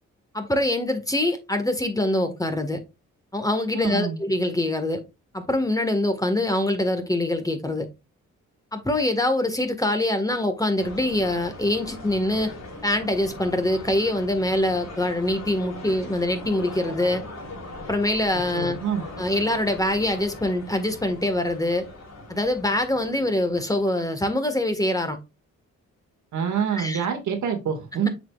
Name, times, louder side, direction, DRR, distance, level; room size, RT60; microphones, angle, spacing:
voice 1, 0.3-2.8 3.3-5.0 5.3-7.9 8.7-12.5 12.8-17.2 17.9-18.8 19.2-21.8 22.3-25.2 26.7-27.0, left 1 dB, 10° left, 1.6 m, -24 dB
voice 2, 3.8-4.2 18.5-19.0 26.3-28.1, right 7 dB, 80° right, 2.0 m, -26 dB
sound 1, 10.8-24.0, left 2 dB, 60° left, 3.5 m, -40 dB
7.8 x 5.1 x 2.4 m
cardioid pair, 65°, 29 cm